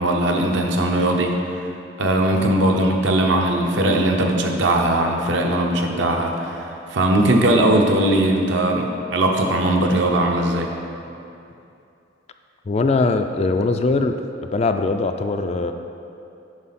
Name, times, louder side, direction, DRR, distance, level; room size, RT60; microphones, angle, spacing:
voice 1, 0.0-1.3 2.0-10.7, right 1 dB, 65° right, 2 dB, 0.8 m, -19 dB
voice 2, 12.7-14.2 14.5-15.7, left 3 dB, 30° left, 7 dB, 0.3 m, -21 dB
9.4 x 5.7 x 4.2 m, 2.7 s
head